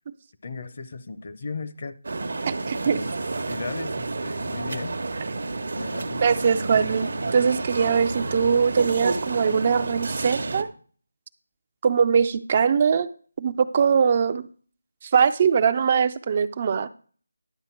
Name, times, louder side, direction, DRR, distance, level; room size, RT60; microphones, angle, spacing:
voice 1, 0.4-2.0 2.3-2.5 2.8-3.0 3.5-4.9 5.8-6.5, left 4 dB, 45° left, 11 dB, 0.7 m, -36 dB
sound 1, 2.0-10.6, right 3 dB, 60° right, 0.9 m, -30 dB
voice 2, 2.5-3.0 6.2-10.7 11.8-13.1 13.4-14.5 15.1-16.9, right 6 dB, 35° right, 12 dB, 0.4 m, -21 dB
11.0 x 6.8 x 4.4 m, 0.43 s
figure-of-eight pair, 160°, 0 cm